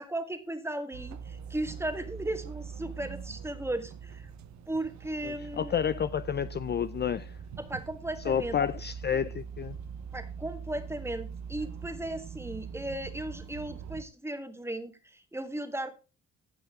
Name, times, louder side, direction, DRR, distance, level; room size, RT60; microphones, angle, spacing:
voice 1, 0.0-4.3 4.7-5.7 7.6-8.6 10.1-16.0, right 1 dB, 10° right, 1.6 m, -36 dB
sound 1, 0.9-14.0, right 7 dB, 70° right, 1.1 m, -42 dB
voice 2, 5.2-7.4 8.3-9.8, left 8 dB, 35° left, 0.5 m, -30 dB
15.5 x 5.7 x 3.6 m
cardioid pair, 90°, 30 cm